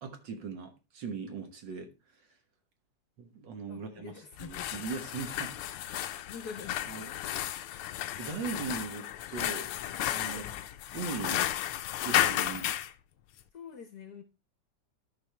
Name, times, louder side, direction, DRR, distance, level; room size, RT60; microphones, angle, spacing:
voice 1, 0.0-1.9 3.2-4.1 4.4-6.1 6.9-7.1 8.2-9.7 10.1-10.5 10.9-11.5 12.0-12.8, right 5 dB, 60° right, 6 dB, 1.8 m, -39 dB
voice 2, 3.7-4.7 6.3-6.8 7.1-7.2 10.2-10.5 13.5-14.2, left 6 dB, 55° left, 7 dB, 1.2 m, -45 dB
sound 1, 4.3-12.9, left 12 dB, 85° left, 1.6 m, -33 dB
13.0 x 5.3 x 3.2 m, 0.26 s
omnidirectional pair, 2.4 m